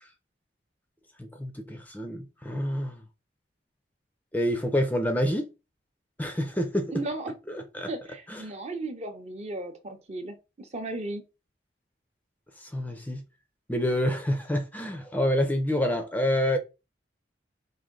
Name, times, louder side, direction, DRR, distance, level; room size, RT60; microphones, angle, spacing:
voice 1, 1.2-3.0 4.3-5.5 6.2-6.9 7.5-7.9 8.3-8.4 12.6-13.2 13.7-16.6, equal, 10° left, 0.5 m, -27 dB
voice 2, 6.9-7.3 7.9-11.2, right 2 dB, 35° right, 0.7 m, -35 dB
4.9 x 2.6 x 3.7 m
head